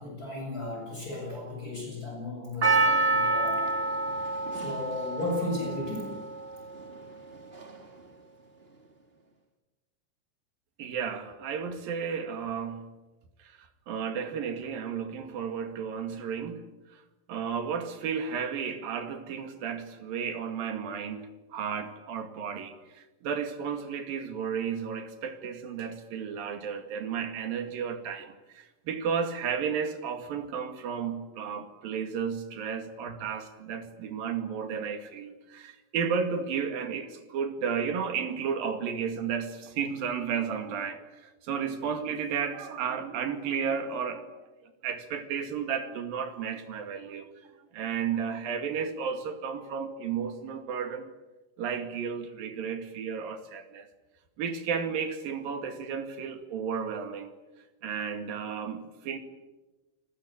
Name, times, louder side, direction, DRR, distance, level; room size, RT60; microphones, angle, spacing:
voice 1, 0.0-3.7 4.5-6.5, left 2 dB, 25° left, -1 dB, 7.7 m, -35 dB
Percussion, 2.6-7.0 7.6-7.7, right 3 dB, 20° right, 1.7 m, -27 dB
voice 2, 10.8-12.9 13.4-13.6 13.9-16.7 17.3-44.4 44.6-47.3 47.7-51.1 51.6-53.9 54.4-57.3 57.8-59.2, right 7 dB, 80° right, 7 dB, 3.9 m, -33 dB
29.0 x 20.0 x 8.7 m, 1.1 s
omnidirectional pair, 4.1 m